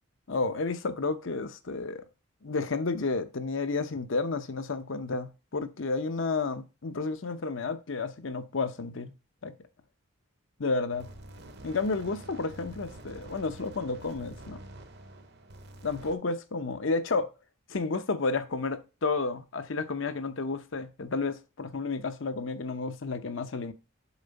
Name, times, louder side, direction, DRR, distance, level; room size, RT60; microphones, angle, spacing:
voice 1, 0.3-2.1 2.4-9.1 9.4-9.5 10.6-11.1 11.6-14.6 15.8-17.3 17.7-23.7, left 3 dB, 65° left, 0.7 m, -31 dB
sound 1, 10.9-16.2, right 1 dB, 50° right, 0.8 m, -47 dB
7.2 x 4.3 x 4.0 m
head